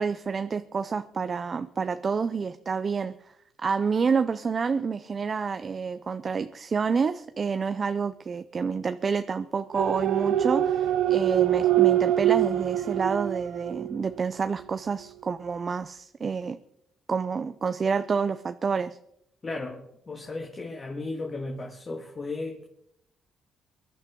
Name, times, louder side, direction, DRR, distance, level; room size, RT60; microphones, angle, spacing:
voice 1, 0.0-3.1 3.6-16.6 17.1-19.0, right 5 dB, 40° right, 0.6 m, -28 dB
sound 1, 9.7-14.2 14.6-14.7, right 13 dB, 85° right, 0.7 m, -24 dB
voice 2, 19.4-22.7, left 2 dB, 35° left, 2.0 m, -35 dB
23.5 x 11.0 x 3.8 m
cardioid pair, 90°, 0 cm